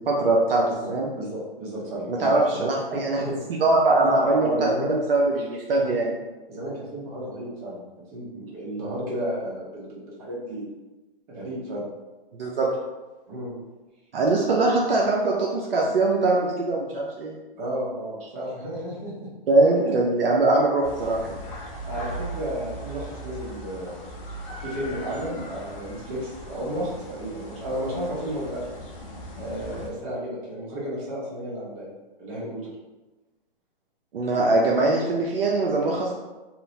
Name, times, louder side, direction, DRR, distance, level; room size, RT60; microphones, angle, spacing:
voice 1, 0.0-0.6 0.9-1.1 2.1-3.2 3.6-4.7 5.1-6.1 12.4-12.7 14.1-17.4 19.5-21.4 34.1-36.1, right 2 dB, 70° right, -2 dB, 0.5 m, -22 dB
voice 2, 0.6-3.4 3.9-5.0 5.7-6.0 6.5-7.8 8.1-10.7 11.3-11.9 13.3-13.5 17.5-19.3 19.8-20.0 21.8-24.0 24.6-28.6 29.4-31.9 32.2-32.7, right 1 dB, 35° right, -5 dB, 1.0 m, -32 dB
sound 1, 20.8-29.9, right 1 dB, 35° left, 0.6 m, -39 dB
2.8 x 2.0 x 2.7 m, 1.1 s
figure-of-eight pair, 130°, 29 cm